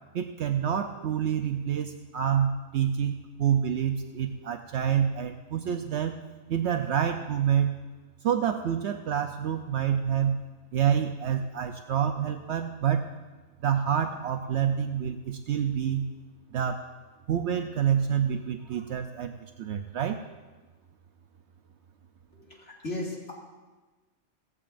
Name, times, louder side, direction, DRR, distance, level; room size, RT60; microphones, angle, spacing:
voice 1, 0.1-6.2 6.5-7.8 8.2-10.4 10.7-13.1 13.6-16.1 16.5-16.9 17.3-20.2, right 8 dB, 70° right, 6 dB, 0.9 m, -27 dB
voice 2, 22.3-23.3, left 1 dB, 70° left, -4 dB, 2.6 m, -36 dB
17.0 x 15.0 x 2.5 m, 1.2 s
omnidirectional pair, 1.3 m